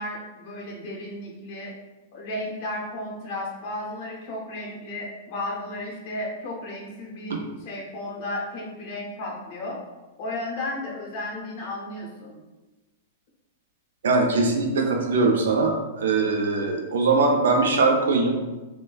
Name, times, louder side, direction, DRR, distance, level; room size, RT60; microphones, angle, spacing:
voice 1, 0.0-1.7 2.1-9.8 10.2-12.3, left 1 dB, 50° left, -2 dB, 0.6 m, -34 dB
voice 2, 14.0-18.4, right 3 dB, 70° right, 2 dB, 0.5 m, -21 dB
3.0 x 2.2 x 2.2 m, 1.2 s
hypercardioid pair, 105°, 0 cm